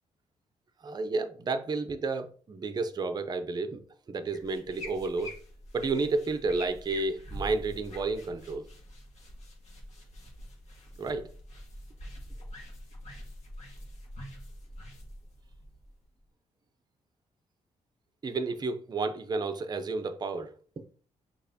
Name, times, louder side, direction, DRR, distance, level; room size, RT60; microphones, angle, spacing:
voice 1, 0.8-5.4 5.7-8.7 11.0-11.3 18.2-20.5, right 3 dB, 30° right, 0.5 m, -31 dB
sound 1, 4.2-16.2, equal, 60° left, 1.6 m, -45 dB
6.3 x 2.9 x 2.7 m
cardioid pair, 100°, 13 cm